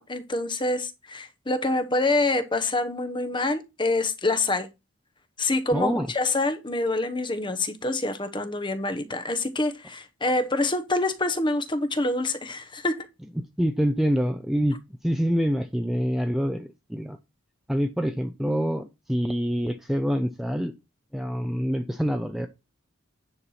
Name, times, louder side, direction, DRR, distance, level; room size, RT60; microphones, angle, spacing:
voice 1, 0.0-4.7 5.4-13.1, left 2 dB, 25° left, 1.0 m, -26 dB
voice 2, 5.7-6.1 13.6-14.8 15.0-17.2 17.7-20.7 21.1-22.5, equal, ahead, 0.6 m, -26 dB
9.8 x 4.6 x 5.6 m
head